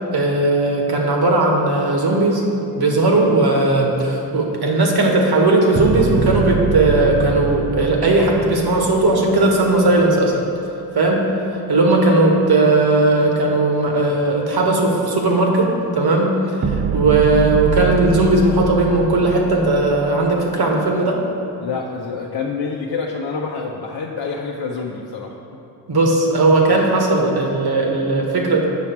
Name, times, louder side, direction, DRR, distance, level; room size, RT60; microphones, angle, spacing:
voice 1, 0.1-2.4 2.7-10.4 10.9-11.2 11.5-21.2 25.9-28.6, right 2 dB, 50° right, 0 dB, 1.6 m, -17 dB
sound 1, 5.8-10.0 16.6-20.4, right 5 dB, 25° right, 0.4 m, -24 dB
voice 2, 21.6-25.6, left 5 dB, 50° left, -1 dB, 0.8 m, -27 dB
7.6 x 5.8 x 4.6 m, 2.8 s
hypercardioid pair, 45°, 48 cm